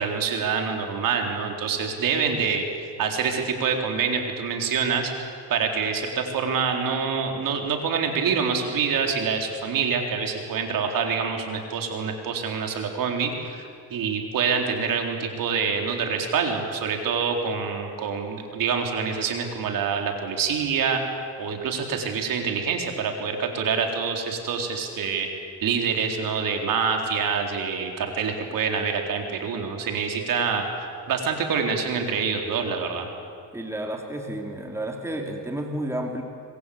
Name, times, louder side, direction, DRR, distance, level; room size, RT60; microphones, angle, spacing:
voice 1, 0.0-2.6 3.0-5.1 5.5-21.0 21.4-25.3 25.6-30.7 31.1-33.1, right 6 dB, 55° right, 3 dB, 4.1 m, -26 dB
voice 2, 33.5-36.2, right 1 dB, 5° right, 2 dB, 3.2 m, -31 dB
25.0 x 23.0 x 8.7 m, 2.3 s
cardioid pair, 110°, 39 cm